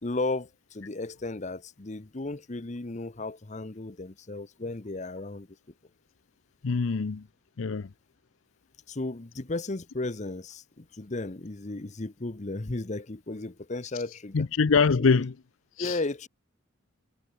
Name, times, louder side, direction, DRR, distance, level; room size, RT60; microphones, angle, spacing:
voice 1, 0.0-5.5 8.9-14.5 15.0-15.2 15.8-16.3, left 2 dB, 35° left, 0.9 m, -34 dB
voice 2, 6.6-7.2 7.6-7.9 14.3-15.3 15.8-16.0, left 4 dB, 85° left, 0.6 m, -24 dB
head